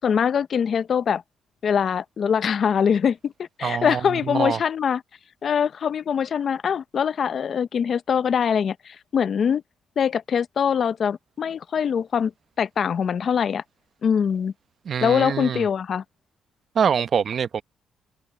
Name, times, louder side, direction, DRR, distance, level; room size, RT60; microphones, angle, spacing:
voice 1, 0.0-1.2 1.6-5.0 5.4-9.6 10.0-12.3 12.6-13.6 14.0-14.5 15.0-16.0, left 7 dB, 55° left, 0.8 m, -23 dB
voice 2, 3.6-4.6 14.9-15.6 16.7-17.6, right 7 dB, 55° right, 0.9 m, -24 dB
cardioid pair, 90°, 0 cm